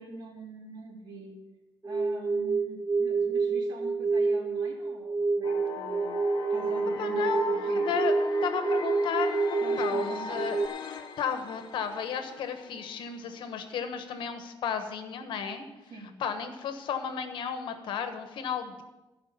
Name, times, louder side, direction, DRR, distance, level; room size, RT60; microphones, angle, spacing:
voice 1, 0.0-1.4 1.8-6.2 6.5-7.8 9.6-10.4 15.9-16.2, right 2 dB, 60° right, -7 dB, 3.0 m, -44 dB
sound 1, 1.8-10.7, right 4 dB, 15° right, 0.4 m, -28 dB
sound 2, 5.4-13.4, left 5 dB, 60° left, 1.3 m, -40 dB
voice 2, 7.0-8.1 8.4-10.6 11.2-15.6 16.2-18.8, left 7 dB, 75° left, 7 dB, 1.2 m, -33 dB
15.0 x 5.1 x 6.8 m, 1.1 s
cardioid pair, 170°, 8 cm